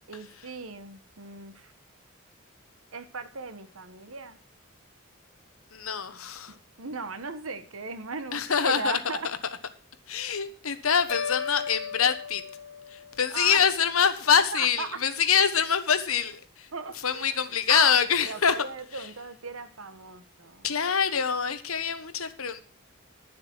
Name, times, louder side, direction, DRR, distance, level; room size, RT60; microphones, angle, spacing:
voice 1, 0.1-1.7 2.9-4.4 6.5-9.3 13.3-13.6 14.5-15.0 16.7-17.4 17.7-20.7, right 4 dB, 75° right, 11 dB, 1.3 m, -37 dB
voice 2, 5.7-6.5 8.3-9.0 9.2-9.4 10.1-12.4 12.9-16.7 17.0-18.6 18.9-19.1 20.6-22.6, left 7 dB, 80° left, 11 dB, 1.2 m, -25 dB
sound 1, 11.1-13.4, left 6 dB, 65° left, 1.6 m, -35 dB
11.5 x 7.5 x 6.1 m, 0.41 s
head